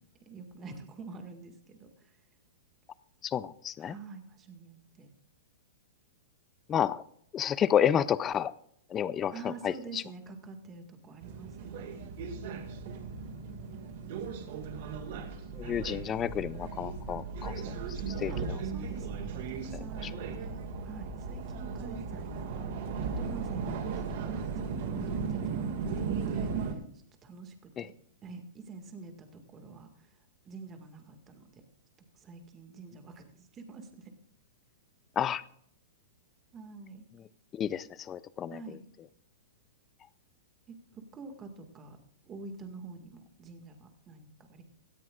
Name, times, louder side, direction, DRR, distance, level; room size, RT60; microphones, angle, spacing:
voice 1, 0.3-1.9 3.8-5.1 9.3-12.1 12.4-12.6 18.3-20.6 20.8-25.4 26.0-26.8 27.2-27.5 27.8-27.9 28.2-30.1 30.5-31.5 32.1-34.1 36.5-37.1 38.5-38.8 40.7-40.8 41.1-42.0 42.3-44.6, right 4 dB, 20° right, 1.9 m, -47 dB
voice 2, 3.2-4.0 6.7-7.0 7.3-8.5 8.9-10.0 15.6-17.5 18.1-18.3 27.8-27.9 35.2-35.4 37.6-38.6, left 9 dB, 20° left, 0.4 m, -30 dB
sound 1, 11.2-26.7, right 5 dB, 55° right, 2.1 m, -36 dB
18.0 x 13.5 x 2.5 m
hypercardioid pair, 155°, 0 cm